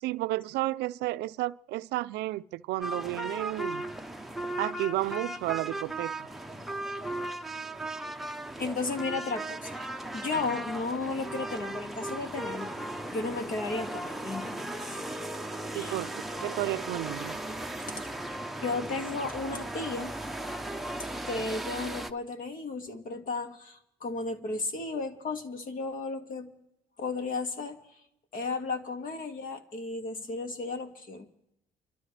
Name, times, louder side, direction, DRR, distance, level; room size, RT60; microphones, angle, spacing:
voice 1, 0.0-3.9 4.6-6.1 15.7-17.4, right 17 dB, 85° right, 0.5 m, -32 dB
sound 1, 2.8-22.1, right 1 dB, ahead, 0.8 m, -37 dB
voice 2, 8.6-9.8 10.1-12.8 13.1-15.0 15.7-16.0 18.6-20.1 20.4-20.6 21.3-26.5 27.0-27.8 28.3-31.3, left 3 dB, 55° left, 2.1 m, -34 dB
28.0 x 13.0 x 3.3 m
cardioid pair, 110°, 17 cm